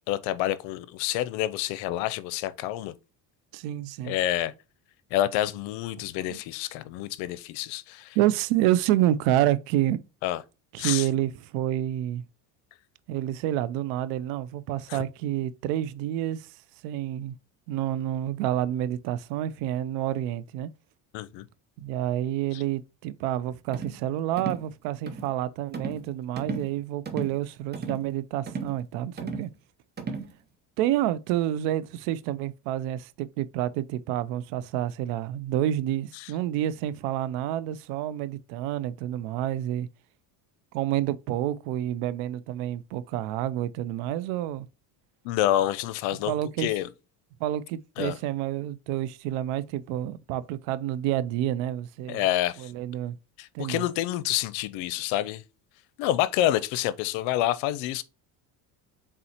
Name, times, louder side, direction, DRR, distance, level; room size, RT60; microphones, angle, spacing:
voice 1, 0.1-2.9 4.0-4.5 5.1-8.2 10.2-10.4 10.8-11.1 14.9-15.0 21.1-21.4 22.5-22.6 36.2-36.3 45.2-46.9 48.0-48.2 52.1-52.7 53.4-55.4 56.0-58.0, left 13 dB, 80° left, 0.6 m, -28 dB
voice 2, 3.5-4.2 6.3-6.4 8.2-10.0 10.7-12.2 13.1-16.5 16.8-17.3 17.7-20.7 21.8-29.5 30.8-39.9 40.7-44.7 46.3-46.7 47.4-52.2 52.6-53.1 53.5-53.8, right 12 dB, 80° right, 0.5 m, -28 dB
sound 1, 23.7-24.0 24.4-24.7 25.1-25.3 25.7-26.1 26.4-26.7 27.1-27.4 27.7-28.1 28.5-28.8 29.2-29.5 30.0-30.3, right 5 dB, 20° right, 0.7 m, -34 dB
4.2 x 3.7 x 2.8 m
supercardioid pair, 100°, 46 cm